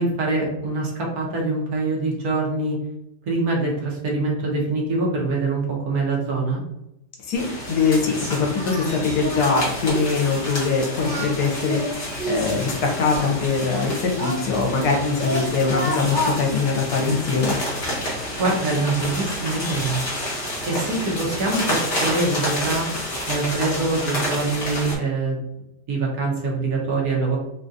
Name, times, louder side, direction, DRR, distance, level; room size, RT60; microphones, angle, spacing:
voice 1, 0.0-2.8 3.3-6.6 18.4-20.0 20.7-22.9 23.3-25.4 25.9-27.4, right 3 dB, 65° right, -3 dB, 1.4 m, -24 dB
voice 2, 7.2-17.6, left 4 dB, 75° left, 0 dB, 1.2 m, -22 dB
sound 1, 7.3-24.9, left 1 dB, 35° left, 1.0 m, -29 dB
Singing, 8.6-8.9 9.2-9.6 9.9-10.2 10.9-12.5 13.1-14.9 15.2-16.4, left 1 dB, 45° right, 0.6 m, -29 dB
3.7 x 2.3 x 2.6 m, 0.85 s
omnidirectional pair, 1.8 m